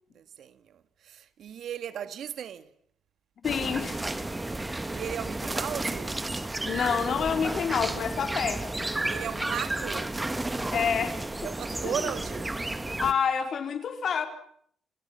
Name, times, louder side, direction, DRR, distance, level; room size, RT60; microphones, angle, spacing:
voice 1, 0.1-2.7 4.9-6.2 9.1-10.2 11.4-12.5, right 9 dB, 70° right, 1.7 m, -36 dB
voice 2, 3.4-4.0 6.7-8.9 10.7-11.2 11.8-12.1 13.0-14.3, left 7 dB, 55° left, 4.1 m, -28 dB
sound 1, 3.4-13.1, right 2 dB, 15° right, 1.6 m, -32 dB
30.0 x 28.5 x 5.7 m
cardioid pair, 105°, 0 cm